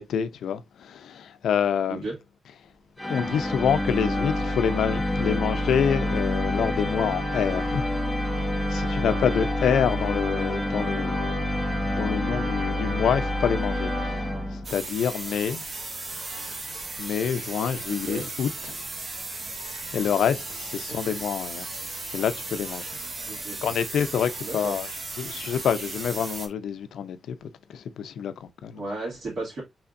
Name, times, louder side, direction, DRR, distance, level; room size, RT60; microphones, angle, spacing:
voice 1, 0.0-2.0 3.1-7.8 8.7-14.1 14.5-15.6 17.0-18.8 19.9-21.7 22.1-22.9 23.6-24.9 25.2-28.8, left 8 dB, 90° left, 0.5 m, -27 dB
sound 1, 3.0-14.9, left 1 dB, ahead, 0.7 m, -27 dB
sound 2, 14.6-26.5, right 3 dB, 35° right, 1.0 m, -36 dB
voice 2, 17.9-18.3 20.9-21.1 23.3-23.7 24.4-24.8 28.7-29.6, right 2 dB, 55° right, 2.4 m, -34 dB
5.8 x 3.5 x 2.6 m
wide cardioid pair, 130°, 0 cm